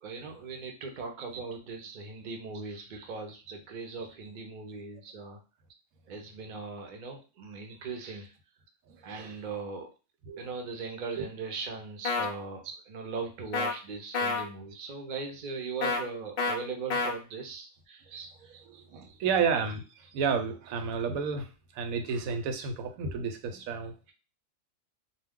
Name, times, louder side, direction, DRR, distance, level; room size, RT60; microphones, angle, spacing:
voice 1, 0.0-5.4 6.1-8.3 9.0-9.9 10.4-18.6, right 4 dB, 50° right, 2 dB, 0.6 m, -39 dB
voice 2, 8.9-9.4 10.3-10.4 11.1-11.3 12.6-12.7 18.1-19.8 20.1-23.9, right 6 dB, 85° right, 7 dB, 1.0 m, -32 dB
sound 1, 12.0-12.3 13.5-13.7 14.1-14.4 15.8-16.0 16.4-16.6 16.9-17.1, left 4 dB, 80° left, 0.4 m, -28 dB
2.2 x 2.2 x 3.5 m, 0.32 s
omnidirectional pair, 1.4 m